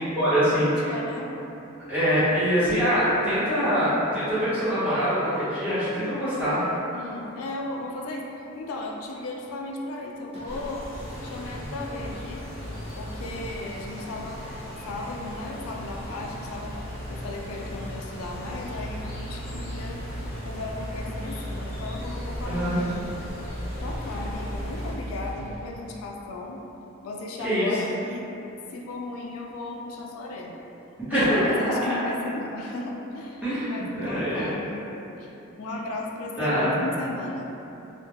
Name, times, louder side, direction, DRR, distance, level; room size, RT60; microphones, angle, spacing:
voice 1, 0.0-0.9 1.9-6.6 22.4-22.8 27.4-27.7 31.1-31.4 33.4-34.5 36.4-36.8, equal, 10° right, -14 dB, 0.8 m, -24 dB
voice 2, 0.5-1.3 6.9-10.9 11.2-12.5 13.0-14.4 14.8-16.8 17.1-20.0 20.5-26.6 27.0-28.3 28.7-30.6 31.1-37.5, left 2 dB, 90° left, 0 dB, 0.3 m, -36 dB
Engine, 10.3-26.0, equal, 30° right, 0.4 m, -38 dB
sound 1, 10.5-24.9, equal, 40° left, 0.6 m, -40 dB
2.2 x 2.1 x 3.2 m, 2.9 s
head